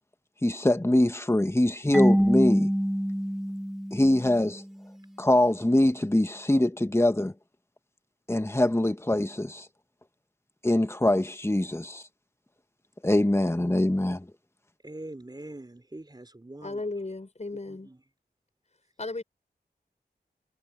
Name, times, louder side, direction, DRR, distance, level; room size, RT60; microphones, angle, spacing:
voice 1, 0.4-2.7 3.9-4.6 5.2-7.3 8.3-9.7 10.6-12.0 13.0-14.3, left 1 dB, 15° left, 1.7 m, -23 dB
Marimba xylophone / Wood, 1.9-4.7, equal, ahead, 1.9 m, -25 dB
voice 2, 14.8-16.8 17.7-18.0, right 1 dB, 25° right, 4.9 m, -43 dB
voice 3, 16.6-17.9 19.0-19.2, left 2 dB, 40° left, 6.8 m, -35 dB
wide cardioid pair, 55°, 17 cm